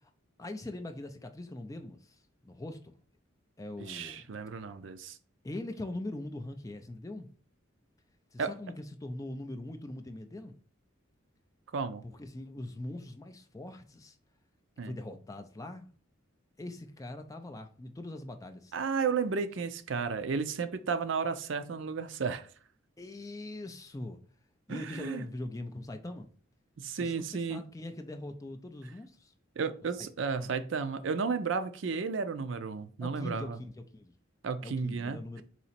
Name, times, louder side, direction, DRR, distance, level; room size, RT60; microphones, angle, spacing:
voice 1, 0.4-2.9 3.6-4.3 5.4-7.3 8.3-10.6 12.0-14.2 14.8-15.9 16.6-18.7 23.0-24.2 24.7-26.3 26.9-29.3 30.4-30.5 33.0-34.1 34.6-35.4, left 1 dB, 15° left, 0.4 m, -42 dB
voice 2, 3.8-5.2 8.4-8.5 11.7-12.0 14.8-15.0 18.7-22.5 24.7-25.3 26.8-27.6 29.6-33.6 34.4-35.4, right 5 dB, 65° right, 0.5 m, -33 dB
4.1 x 2.9 x 4.2 m
head